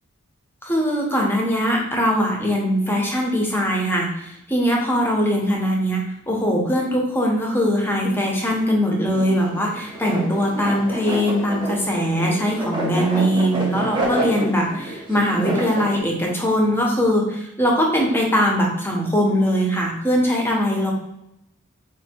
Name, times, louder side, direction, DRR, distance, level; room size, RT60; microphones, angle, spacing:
voice 1, 0.6-6.0 6.3-20.9, equal, 10° left, -1 dB, 1.0 m, -21 dB
sound 1, 9.1-16.0, right 1 dB, 20° right, 1.1 m, -28 dB
4.1 x 2.7 x 4.4 m, 0.83 s
head